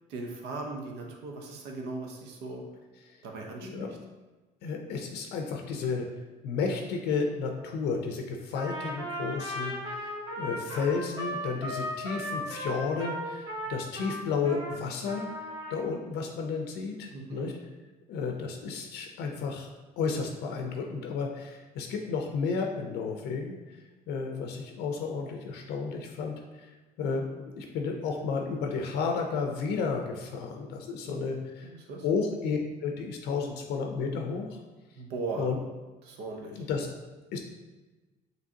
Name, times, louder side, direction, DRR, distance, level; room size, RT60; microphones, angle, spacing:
voice 1, 0.1-2.6 3.2-3.9 17.1-17.5 31.0-31.2 31.6-32.0 34.9-35.5 36.0-36.7, right 3 dB, 90° right, 1 dB, 0.8 m, -38 dB
voice 2, 4.6-6.1 6.4-15.3 15.7-17.5 18.1-19.7 20.0-23.6 24.1-26.7 27.0-31.7 32.0-34.6 35.4-35.6 36.5-36.9 37.3-37.4, left 5 dB, 80° left, 2 dB, 0.5 m, -32 dB
Trumpet, 8.5-14.8 15.0-15.8, equal, 30° right, 1.4 m, -36 dB
5.1 x 3.1 x 2.7 m, 1.2 s
cardioid pair, 110°, 17 cm